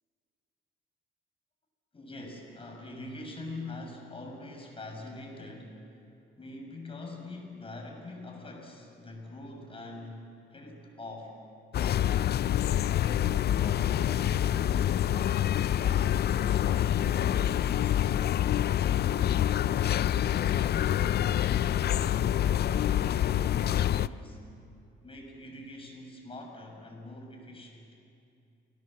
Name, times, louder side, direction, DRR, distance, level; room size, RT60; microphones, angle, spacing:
voice 1, 1.9-6.0 6.4-11.4 11.7-12.2 13.0-15.1 15.6-19.3 20.1-21.5 21.8-24.4 25.0-27.9, left 2 dB, 25° left, 1 dB, 6.7 m, -44 dB
sound 1, 11.7-24.1, left 11 dB, 55° left, 0.5 m, -26 dB
29.0 x 18.0 x 7.7 m, 2.6 s
cardioid pair, 90°, 20 cm